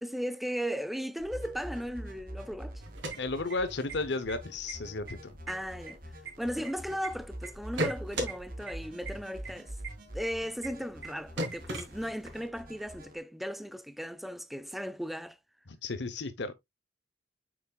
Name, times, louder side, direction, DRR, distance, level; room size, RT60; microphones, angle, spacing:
voice 1, 0.0-2.8 5.5-6.0 6.4-9.7 10.1-15.4, equal, ahead, 0.5 m, -36 dB
sound 1, 1.2-13.2, equal, 50° right, 2.5 m, -45 dB
sound 2, 2.8-3.9 4.3-4.4 4.7-5.1 5.5-7.1 7.4-8.3 8.7-8.8 9.1-9.2 9.4-9.5 9.8-9.9 10.2-10.3 10.6-10.7 11.0-11.1 11.4-12.4, right 1 dB, 70° right, 3.3 m, -35 dB
voice 2, 3.2-5.3 15.7-16.5, left 3 dB, 65° left, 0.9 m, -34 dB
8.3 x 6.2 x 2.4 m
head